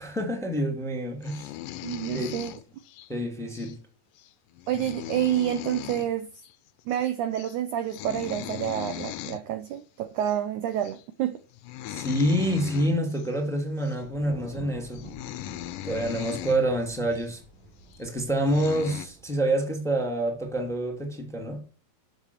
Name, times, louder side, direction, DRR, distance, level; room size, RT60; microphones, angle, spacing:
voice 1, 0.0-1.5 2.1-2.3 3.1-3.8 11.9-15.0 15.8-17.4 18.0-21.6, right 1 dB, ahead, 2.1 m, -27 dB
sound 1, 1.2-3.1 3.5-3.7 4.2-4.3 4.5-6.1 6.4-6.5 6.8-7.1 7.3-7.6 7.9-9.4 10.2-10.4 10.8-11.0 11.5-13.3 13.8-14.0 14.6-14.7 14.9-16.6 17.1-17.3 18.0-18.1 18.4-19.1, left 13 dB, 75° left, 2.2 m, -38 dB
voice 2, 1.8-2.6 4.7-6.3 6.9-11.4, right 11 dB, 75° right, 1.9 m, -28 dB
Thunder, 14.0-19.4, right 2 dB, 55° right, 4.3 m, -48 dB
12.5 x 6.9 x 7.1 m
omnidirectional pair, 4.4 m